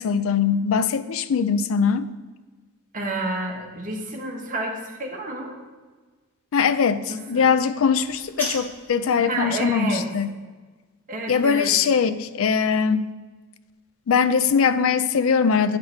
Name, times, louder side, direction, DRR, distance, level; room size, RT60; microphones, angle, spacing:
voice 1, 0.0-2.1 6.5-10.3 11.3-13.1 14.1-15.8, left 6 dB, 70° left, 13 dB, 0.4 m, -21 dB
voice 2, 2.9-5.6 7.1-7.5 9.2-10.1 11.1-11.7, right 2 dB, 40° right, 0 dB, 1.2 m, -30 dB
sound 1, 7.9-9.0, equal, 10° left, 2.5 m, -33 dB
9.0 x 5.7 x 4.3 m, 1.3 s
head